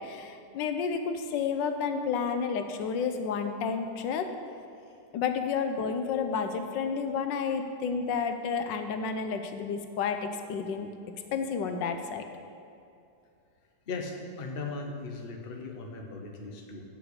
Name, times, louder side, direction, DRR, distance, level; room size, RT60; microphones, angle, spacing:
voice 1, 0.0-4.3 5.1-10.9 11.3-12.2, left 6 dB, 80° left, 7 dB, 1.3 m, -31 dB
voice 2, 13.9-16.8, left 3 dB, 45° left, 2 dB, 0.8 m, -38 dB
8.2 x 5.9 x 6.6 m, 2.5 s
omnidirectional pair, 2.0 m